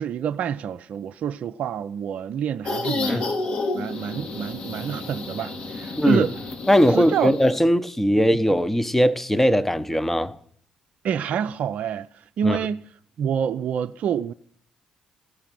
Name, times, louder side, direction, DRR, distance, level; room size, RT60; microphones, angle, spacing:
voice 1, 0.0-3.3 3.7-6.4 6.9-7.4 11.0-12.9 13.2-14.3, right 8 dB, 65° right, 0.4 m, -27 dB
sound 1, 2.6-7.6, left 3 dB, 60° left, 2.1 m, -30 dB
voice 2, 6.7-10.4 12.4-12.6, equal, 10° left, 0.9 m, -20 dB
16.0 x 5.8 x 9.1 m
hypercardioid pair, 50°, 3 cm